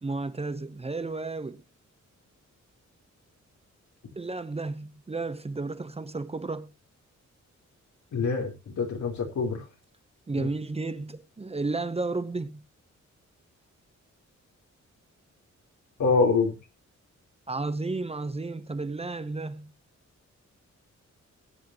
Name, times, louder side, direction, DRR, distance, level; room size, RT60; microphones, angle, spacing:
voice 1, 0.0-1.6 4.2-6.7 10.3-12.6 17.5-19.7, right 3 dB, 20° right, 0.8 m, -32 dB
voice 2, 8.1-9.6 10.4-10.5 16.0-16.6, left 4 dB, 80° left, 4.0 m, -25 dB
20.0 x 8.4 x 3.0 m
wide cardioid pair, 155°, 29 cm